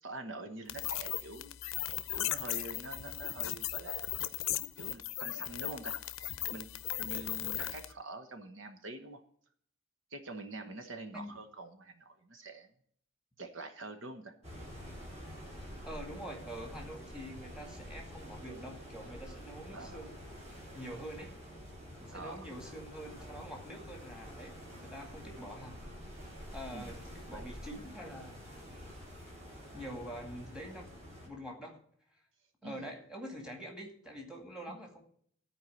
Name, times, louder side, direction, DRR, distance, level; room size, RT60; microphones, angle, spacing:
voice 1, 0.0-1.5 2.1-4.1 4.8-5.9 6.5-6.7 6.9-9.2 10.1-12.7 13.4-14.3 19.7-20.0 22.1-22.5 26.7-27.0 27.3-27.5 32.6-32.9 34.7-34.8, right 2 dB, 70° right, 6 dB, 1.1 m, -45 dB
sound 1, 0.7-7.9, left 13 dB, 85° left, 0.6 m, -37 dB
sound 2, 14.4-31.3, equal, 35° right, 4.1 m, -48 dB
voice 2, 15.8-20.2 20.7-21.4 22.0-24.5 24.8-25.8 26.5-28.5 29.7-30.9 31.2-31.8 32.6-35.0, equal, 5° right, 1 dB, 2.1 m, -45 dB
13.5 x 4.7 x 8.5 m, 0.62 s
head